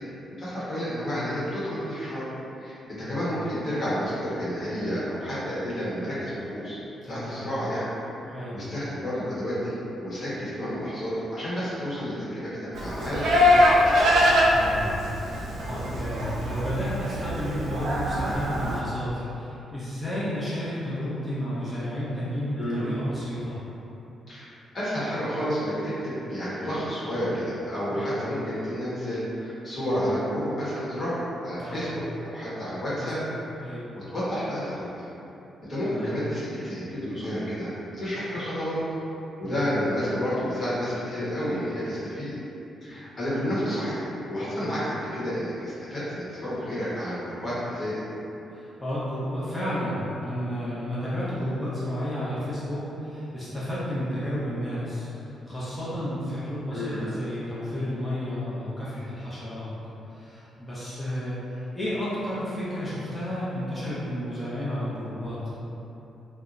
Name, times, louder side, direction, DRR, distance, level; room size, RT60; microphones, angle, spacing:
voice 1, 0.0-2.3 2.6-6.8 7.1-7.9 8.1-13.6 22.6-22.8 24.3-24.5 24.7-31.9 32.2-33.2 33.6-33.7 33.9-34.9 35.7-37.7 38.0-38.8 39.4-42.3 42.8-48.0 56.7-57.0, equal, 50° left, -11 dB, 1.1 m, -30 dB
voice 2, 2.8-3.2 7.0-7.4 8.3-8.6 14.5-14.9 15.3-23.6 27.9-28.2 29.7-29.9 31.6-31.9 33.0-33.3 33.6-33.9 35.8-36.1 39.4-39.7 42.9-43.0 43.3-43.5 44.4-44.6 48.5-59.7 60.1-65.4, equal, 10° left, -11 dB, 0.9 m, -32 dB
Livestock farm animals working animals, 12.7-18.8, left 1 dB, 75° right, 0.3 m, -23 dB
2.7 x 2.1 x 2.5 m, 3.0 s
supercardioid pair, 55°, 0 cm